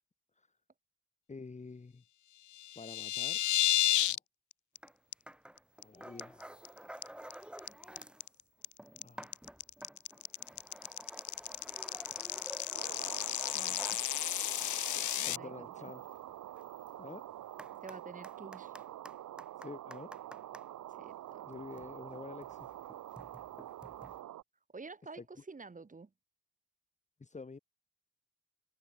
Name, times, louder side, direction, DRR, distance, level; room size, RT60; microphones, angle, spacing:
voice 1, 1.3-2.0 2.8-3.4 3.9-4.2 5.8-6.6 9.0-9.4 12.2-12.3 15.2-16.0 17.0-17.2 19.6-20.1 21.5-22.7 25.2-25.3 27.2-27.6, left 4 dB, 25° left, 2.0 m, -48 dB
sound 1, 2.5-4.2 4.5-4.8 5.1-5.2 5.6-5.8 6.2-6.7 7.0-15.4, left 13 dB, 75° left, 1.7 m, -33 dB
sound 2, 4.8-5.0 5.3-8.3 8.6-20.7 21.4-24.2, right 1 dB, 5° right, 1.8 m, -52 dB
sound 3, 12.7-24.4, right 13 dB, 80° right, 3.5 m, -47 dB
voice 2, 13.5-14.1 14.9-15.9 17.8-18.8 20.9-21.6 24.0-24.2 24.7-26.1, right 4 dB, 25° right, 4.1 m, -50 dB
open air
cardioid pair, 90°, 30 cm